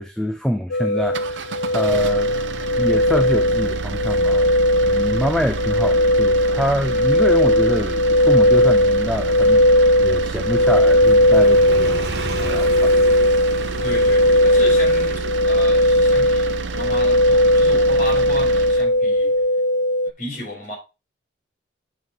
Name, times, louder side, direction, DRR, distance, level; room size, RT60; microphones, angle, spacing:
voice 1, 0.0-2.4 2.8-4.5 4.8-13.4, equal, 5° left, 0.6 m, -25 dB
sound 1, 0.7-20.1, left 1 dB, 85° left, 0.4 m, -17 dB
sound 2, 1.0-18.9, right 4 dB, 80° right, 0.6 m, -30 dB
Motorcycle, 5.1-19.5, right 2 dB, 60° right, 1.5 m, -37 dB
voice 2, 13.8-19.3 20.2-20.7, equal, 45° left, 4.9 m, -33 dB
8.4 x 5.5 x 3.1 m
head